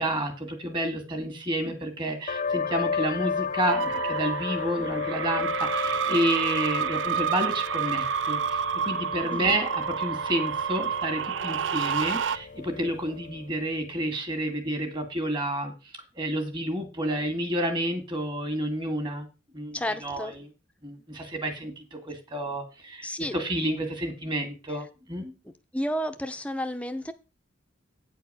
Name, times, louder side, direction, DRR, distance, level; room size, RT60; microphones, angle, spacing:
voice 1, 0.0-15.7 16.1-19.3 19.5-20.5 20.8-25.3, right 1 dB, 25° right, 2.1 m, -30 dB
sound 1, 2.3-13.6, left 5 dB, 45° left, 0.5 m, -34 dB
sound 2, 3.7-12.4, right 7 dB, 75° right, 0.5 m, -29 dB
voice 2, 9.3-9.6 19.7-20.3 23.0-23.3 25.7-27.1, equal, 5° left, 0.8 m, -31 dB
9.1 x 4.6 x 6.8 m
head